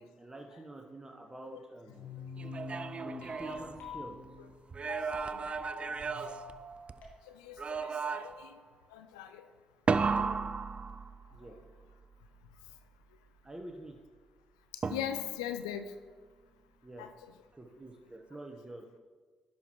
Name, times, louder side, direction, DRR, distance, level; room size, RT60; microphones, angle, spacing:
voice 1, 0.0-2.1 3.0-4.2 11.3-11.6 13.4-14.0 16.8-17.1 17.6-18.8, right 1 dB, 20° right, 2 dB, 0.9 m, -47 dB
sound 1, 1.9-7.1, left 4 dB, 70° left, 1.5 m, -46 dB
sound 2, 2.4-4.3 4.7-7.1 7.6-8.5 9.9-11.5 14.8-15.5, right 5 dB, 35° right, 0.3 m, -35 dB
voice 2, 4.9-5.5 6.0-6.4 7.3-8.6 8.9-9.5 14.7-15.9 17.0-17.1, left 10 dB, 90° left, 8 dB, 0.3 m, -41 dB
10.0 x 5.8 x 3.0 m, 1.4 s
hypercardioid pair, 45°, 3 cm